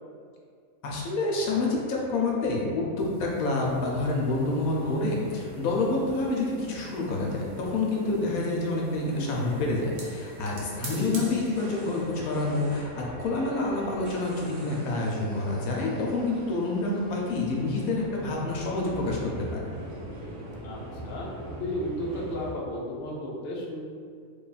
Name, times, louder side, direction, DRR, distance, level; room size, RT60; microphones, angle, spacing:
voice 1, 0.8-19.8, left 2 dB, 75° left, -2 dB, 1.1 m, -28 dB
sound 1, 3.0-12.3, right 2 dB, 60° right, 0.9 m, -49 dB
sound 2, 3.9-22.5, right 1 dB, 80° right, 1.1 m, -43 dB
voice 2, 10.9-11.2 20.6-21.3 21.6-23.8, equal, 55° left, -4 dB, 0.7 m, -34 dB
3.3 x 2.3 x 3.9 m, 2.2 s
omnidirectional pair, 1.6 m